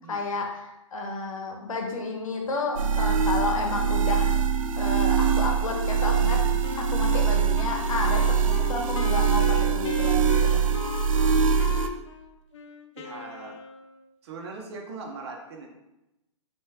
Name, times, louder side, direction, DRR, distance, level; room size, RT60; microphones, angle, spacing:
voice 1, 0.1-4.3 4.8-6.4 6.8-10.6, left 3 dB, 80° left, 2 dB, 1.0 m, -31 dB
sound 1, 2.8-11.9, right 6 dB, 80° right, 0.4 m, -23 dB
Wind instrument woodwind instrument, 6.6-14.1, left 8 dB, 60° left, 0.4 m, -40 dB
voice 2, 13.0-13.6 14.2-15.7, right 3 dB, 50° right, 2 dB, 0.8 m, -40 dB
3.3 x 3.1 x 3.4 m, 0.94 s
hypercardioid pair, 145°, 17 cm